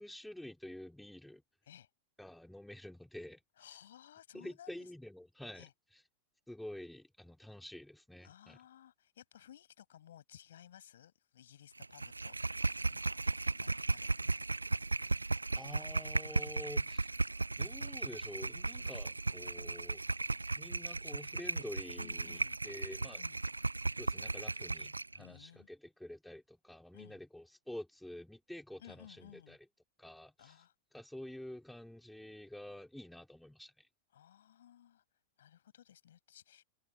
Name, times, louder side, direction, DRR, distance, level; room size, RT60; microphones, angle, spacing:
voice 1, 0.0-1.4 2.2-3.4 4.3-5.7 5.9-6.0 6.5-8.6 15.5-17.1 17.6-20.0 20.6-23.2 24.0-29.6 30.0-30.5 30.9-33.9, left 1 dB, 5° left, 4.5 m, -48 dB
voice 2, 3.6-4.9 5.5-5.7 8.2-14.4 22.0-22.6 23.1-23.4 25.1-25.7 26.9-27.2 28.8-29.6 30.4-30.7 34.1-35.0 35.4-36.6, left 10 dB, 60° left, 7.8 m, -58 dB
sound 1, 11.8-25.2, right 3 dB, 80° right, 0.8 m, -36 dB
figure-of-eight pair, 90°, 0 cm